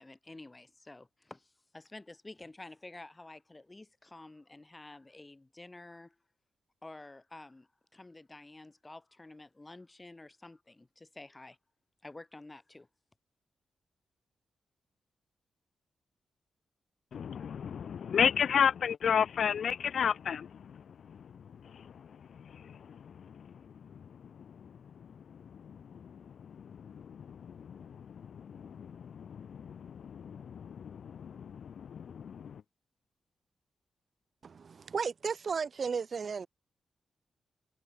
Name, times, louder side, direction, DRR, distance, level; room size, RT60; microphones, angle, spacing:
voice 1, 0.0-6.2 6.8-11.6 12.0-12.9, left 2 dB, 25° left, 5.9 m, -50 dB
voice 2, 17.1-20.8 21.1-21.2 21.6-22.1 22.4-23.5 24.6-24.7 25.6-32.6, left 7 dB, 70° left, 0.7 m, -34 dB
voice 3, 34.4-36.5, right 5 dB, 60° right, 3.8 m, -34 dB
supercardioid pair, 50°, 0 cm